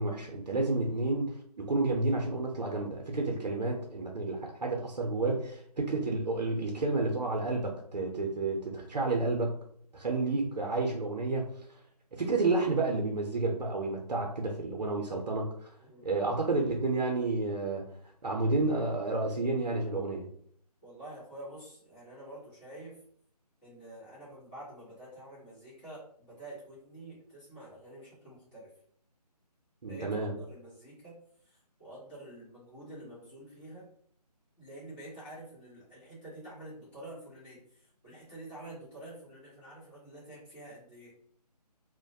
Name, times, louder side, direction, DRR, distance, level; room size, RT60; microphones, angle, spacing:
voice 1, 0.0-9.6 9.9-11.5 12.1-15.7 16.0-17.8 18.2-20.3 29.8-30.3, right 3 dB, 85° right, 0 dB, 0.6 m, -30 dB
voice 2, 15.8-16.2 20.8-23.0 23.6-28.7 29.9-31.2 31.4-33.8 34.6-41.1, right 1 dB, 15° left, -10 dB, 1.0 m, -48 dB
2.3 x 2.1 x 2.6 m, 0.64 s
figure-of-eight pair, 160°, 21 cm